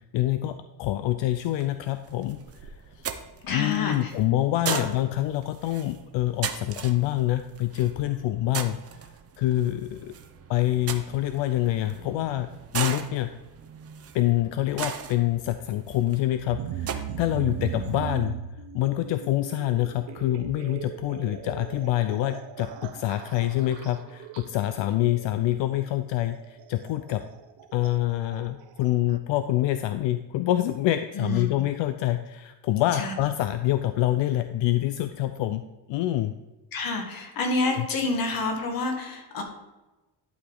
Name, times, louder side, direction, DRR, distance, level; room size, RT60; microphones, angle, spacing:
voice 1, 0.1-3.1 3.4-9.1 9.4-10.1 10.5-12.5 12.7-13.3 14.1-18.3 18.7-27.2 27.7-35.6 35.9-36.3 37.7-37.9, left 14 dB, 80° left, 10 dB, 0.5 m, -26 dB
sound 1, 1.4-18.1, right 8 dB, 35° right, 0.6 m, -39 dB
voice 2, 3.5-4.1 4.7-4.8 31.1-31.6 32.9-33.1 36.7-39.4, left 3 dB, 50° left, 3 dB, 1.6 m, -28 dB
sound 2, 16.5-29.2, right 10 dB, 75° right, 0.7 m, -39 dB
11.5 x 5.0 x 3.8 m, 1.1 s
cardioid pair, 150°, 44 cm